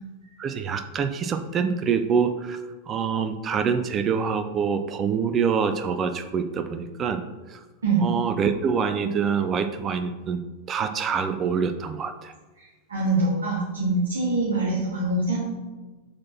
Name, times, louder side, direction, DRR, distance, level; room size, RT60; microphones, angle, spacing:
voice 1, 0.4-2.6 2.9-7.2 7.5-7.6 8.0-10.4 10.7-12.3, right 6 dB, 25° right, 9 dB, 0.6 m, -25 dB
voice 2, 12.9-15.4, right 2 dB, 70° right, -7 dB, 1.9 m, -24 dB
7.5 x 4.3 x 4.3 m, 1.2 s
figure-of-eight pair, 90°, 0 cm